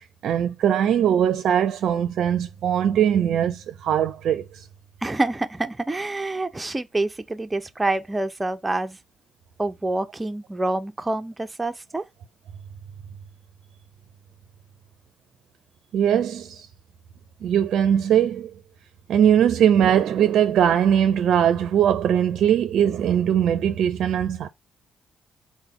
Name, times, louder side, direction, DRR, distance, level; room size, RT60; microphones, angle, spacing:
voice 1, 0.2-4.6 15.9-16.7 17.4-18.5 19.1-24.5, right 9 dB, 75° right, 0.4 m, -20 dB
voice 2, 5.0-9.0 9.6-12.1, right 2 dB, 20° right, 0.5 m, -27 dB
3.9 x 2.1 x 4.4 m
cardioid pair, 75°, 0 cm